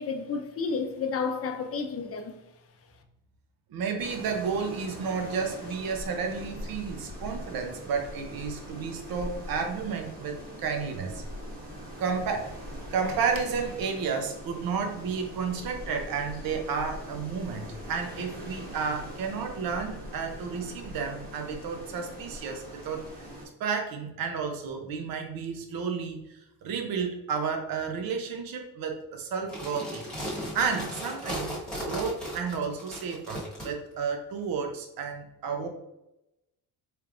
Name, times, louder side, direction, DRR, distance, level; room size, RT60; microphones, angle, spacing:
voice 1, 0.0-2.3, left 5 dB, 35° left, 0.5 m, -31 dB
voice 2, 3.7-11.2 12.0-12.5 12.9-23.0 23.6-26.2 26.6-30.0 30.5-35.7, right 5 dB, 60° right, 0.8 m, -32 dB
sound 1, 4.0-23.5, equal, 20° right, 1.4 m, -42 dB
sound 2, 29.4-33.7, equal, 5° left, 1.3 m, -36 dB
4.4 x 3.4 x 2.5 m
cardioid pair, 155°, 39 cm